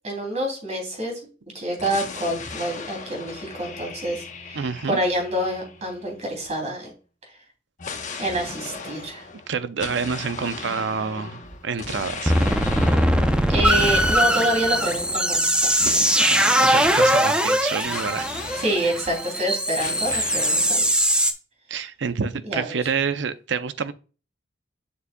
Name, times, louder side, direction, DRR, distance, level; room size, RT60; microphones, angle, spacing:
voice 1, 0.0-1.2 1.5-4.6 4.9-6.9 7.9-9.3 13.5-16.2 18.6-20.8 22.4-22.7, right 1 dB, 40° right, 3.0 m, -27 dB
sound 1, 1.8-6.5 7.8-19.4 19.8-20.9, left 4 dB, 40° left, 1.0 m, -37 dB
voice 2, 4.5-5.0 9.5-12.3 16.2-18.3 20.1-20.7 21.7-23.9, right 5 dB, 70° right, 0.6 m, -28 dB
sound 2, 11.5-11.6 12.0-12.1 12.3-21.3, equal, 5° right, 0.7 m, -21 dB
7.0 x 6.9 x 2.3 m
head